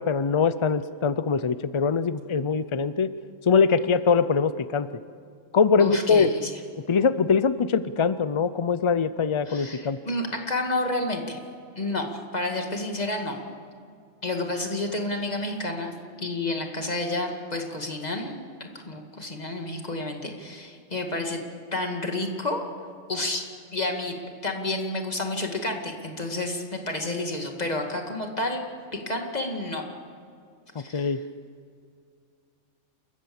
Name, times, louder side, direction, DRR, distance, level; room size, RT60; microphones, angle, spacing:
voice 1, 0.0-3.1 3.5-4.9 5.5-6.3 6.9-10.0 30.9-31.2, left 5 dB, 55° left, 14 dB, 0.3 m, -22 dB
voice 2, 5.8-6.5 9.5-11.4 11.7-13.4 14.2-15.9 16.2-21.4 21.7-22.7 23.1-23.4 23.7-28.6 29.1-29.8 30.8-31.1, left 2 dB, 35° left, 3 dB, 2.3 m, -30 dB
28.0 x 15.0 x 7.1 m, 2.3 s
omnidirectional pair, 1.3 m